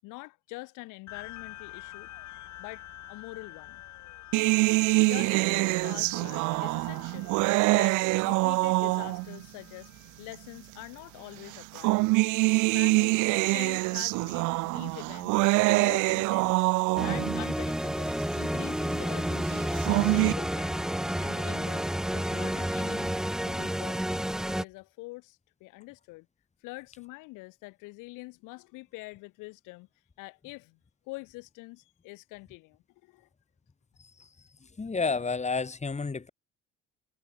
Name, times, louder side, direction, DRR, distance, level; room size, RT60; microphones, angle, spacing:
voice 1, 0.0-2.1 2.6-3.8 5.0-7.3 7.7-9.9 10.2-12.0 12.7-13.2 13.5-15.4 15.7-16.6 17.0-20.9 21.2-24.0 24.5-26.3 26.6-29.9 30.2-30.8 31.1-33.3, left 24 dB, 85° left, 6.7 m, -45 dB
sound 1, 1.1-11.9, left 14 dB, 65° left, 7.9 m, -49 dB
sound 2, 4.3-9.4 10.3-10.4 11.5-17.4 19.6-20.3, right 24 dB, 75° right, 0.5 m, -25 dB
sound 3, 17.0-24.6, equal, ahead, 0.8 m, -30 dB
voice 2, 34.8-36.3, left 4 dB, 20° left, 4.6 m, -31 dB
supercardioid pair, 95°, 31 cm